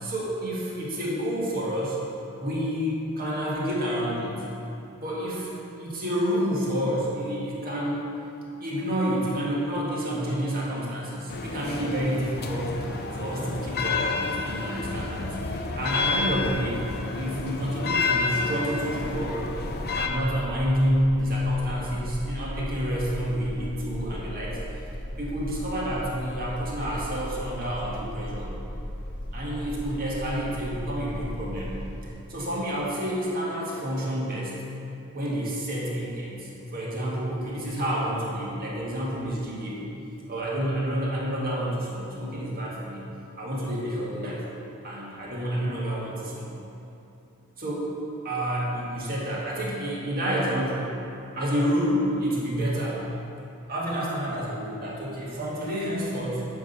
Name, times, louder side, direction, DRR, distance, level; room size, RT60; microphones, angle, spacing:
voice 1, 0.0-2.0 2.4-4.5 5.0-5.5 5.8-8.1 8.6-15.4 15.7-16.8 17.1-19.4 20.0-24.6 25.2-28.5 29.3-31.8 32.3-34.6 35.1-39.8 40.3-43.1 43.4-44.4 44.8-46.5 47.6-47.9 48.2-50.9 51.3-53.0 53.7-56.5, equal, 45° right, -5 dB, 1.7 m, -29 dB
sound 1, 11.3-20.1, left 3 dB, 45° left, 0.6 m, -29 dB
sound 2, 19.0-32.1, equal, 75° left, 1.2 m, -37 dB
9.6 x 3.7 x 6.7 m, 2.8 s
head